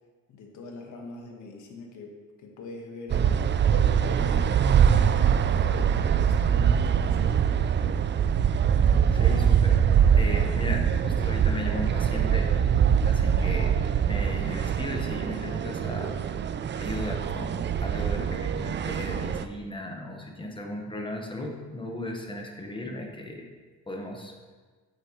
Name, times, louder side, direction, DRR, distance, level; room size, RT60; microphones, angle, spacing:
voice 1, 0.3-2.1 2.4-7.5, left 3 dB, 75° left, 2 dB, 1.5 m, -42 dB
sound 1, 3.1-19.4, right 8 dB, 40° right, 0.4 m, -23 dB
voice 2, 9.1-12.5 13.1-16.2 16.7-23.5 23.9-24.3, left 1 dB, 15° left, 1 dB, 1.3 m, -36 dB
9.0 x 7.9 x 3.1 m, 1.4 s
cardioid pair, 90°, 30 cm